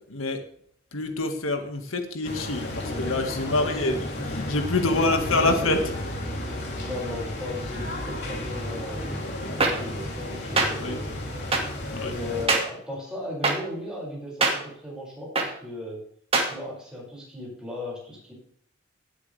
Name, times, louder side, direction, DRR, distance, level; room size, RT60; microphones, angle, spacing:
voice 1, 0.1-0.4 0.9-4.0 4.5-5.9 10.8-11.0 11.9-12.1, left 2 dB, 90° left, 6 dB, 1.9 m, -26 dB
sound 1, 2.2-12.5, left 1 dB, 60° left, 3.4 m, -33 dB
voice 2, 3.5-4.0 4.8-5.8 6.3-11.4 12.0-16.0 16.4-18.3, left 1 dB, 5° right, -5 dB, 6.2 m, -36 dB
sound 2, 9.6-9.7 10.6-10.7 11.5-11.6 12.5-12.6 13.4-13.5 14.4-14.5 15.4-15.5 16.3-16.5, right 3 dB, 30° right, 2.2 m, -21 dB
18.0 x 8.5 x 3.5 m, 0.63 s
head